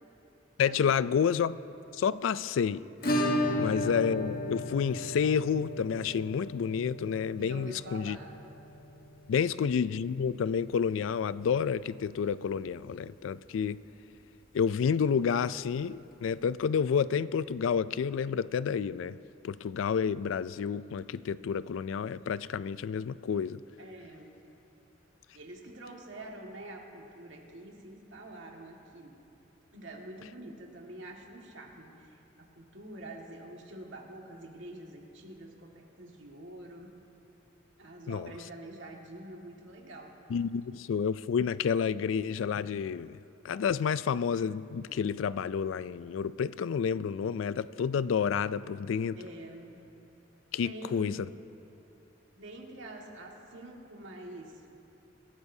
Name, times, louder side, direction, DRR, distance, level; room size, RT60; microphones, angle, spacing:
voice 1, 0.6-1.6 1.9-2.9 3.6-8.2 9.3-13.8 14.5-19.2 19.4-23.6 38.1-38.3 40.3-43.2 43.4-49.2 50.5-51.2, left 7 dB, 90° left, 0.3 m, -29 dB
Acoustic guitar / Strum, 3.0-11.6 11.9-12.0 12.3-12.4 12.7-12.8 14.9-15.0 16.1-16.2, left 1 dB, 50° left, 1.4 m, -35 dB
voice 2, 7.4-8.4 9.4-9.5 23.8-24.4 25.3-29.1 29.7-36.9 37.8-40.3 49.2-49.8 50.6-51.2 52.4-54.6, right 1 dB, 70° right, 1.8 m, -46 dB
25.5 x 13.5 x 2.7 m
head